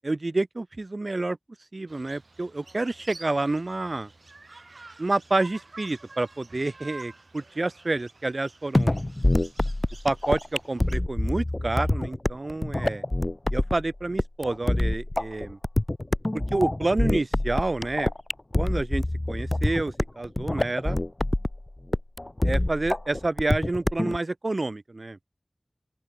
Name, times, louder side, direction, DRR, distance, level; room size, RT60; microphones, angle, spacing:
voice 1, 0.0-1.4 1.7-4.1 5.0-9.0 10.0-13.0 13.5-15.6 16.5-18.1 18.6-21.0 22.4-25.2, right 2 dB, 60° right, 0.5 m, -28 dB
sound 1, 1.9-11.0, right 3 dB, 80° right, 6.8 m, -49 dB
sound 2, 8.7-24.2, left 1 dB, 35° left, 0.5 m, -26 dB
open air
wide cardioid pair, 55°, 0 cm